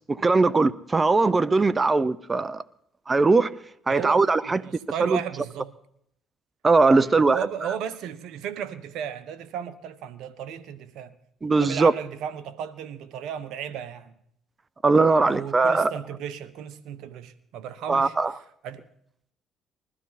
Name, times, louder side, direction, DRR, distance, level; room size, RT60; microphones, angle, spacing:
voice 1, 0.1-2.6 3.1-3.6 3.9-4.6 5.0-5.2 6.6-7.4 11.4-11.9 14.8-15.9 17.9-18.3, right 3 dB, 25° right, 0.6 m, -20 dB
voice 2, 3.9-5.7 7.0-11.1 11.6-14.1 15.2-18.2 18.6-18.8, right 9 dB, 70° right, 1.2 m, -35 dB
21.5 x 12.5 x 4.2 m
supercardioid pair, 75°, 0 cm